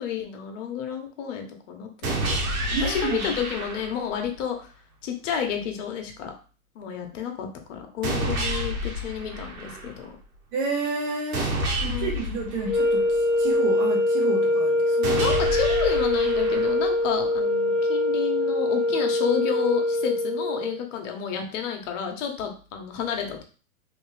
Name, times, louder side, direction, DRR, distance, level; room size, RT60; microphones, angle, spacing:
voice 1, 0.0-4.7 5.0-6.3 6.7-10.1 11.4-12.5 15.0-23.4, left 8 dB, 60° left, 4 dB, 1.0 m, -31 dB
sound 1, 2.0-4.1 8.0-10.0 11.3-13.3 15.0-17.0, right 1 dB, 80° right, 1.4 m, -29 dB
voice 2, 2.7-3.2 10.5-11.5 11.8-15.1, right 4 dB, 55° right, 0 dB, 1.5 m, -30 dB
sound 2, 12.6-20.8, left 1 dB, ahead, 0.4 m, -23 dB
3.3 x 3.0 x 3.2 m, 0.38 s
hypercardioid pair, 130°, 43 cm